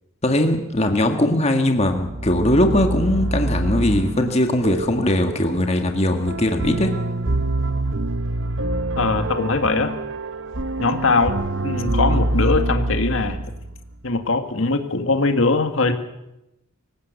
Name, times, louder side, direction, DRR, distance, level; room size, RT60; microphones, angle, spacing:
voice 1, 0.2-6.9, left 1 dB, 30° left, 5 dB, 1.7 m, -20 dB
sound 1, 1.9-13.9, right 1 dB, 60° right, 0.9 m, -25 dB
voice 2, 9.0-9.9 10.8-11.4 11.6-13.4 14.0-15.9, left 3 dB, 70° left, 7 dB, 2.1 m, -21 dB
25.5 x 16.0 x 8.2 m, 0.91 s
head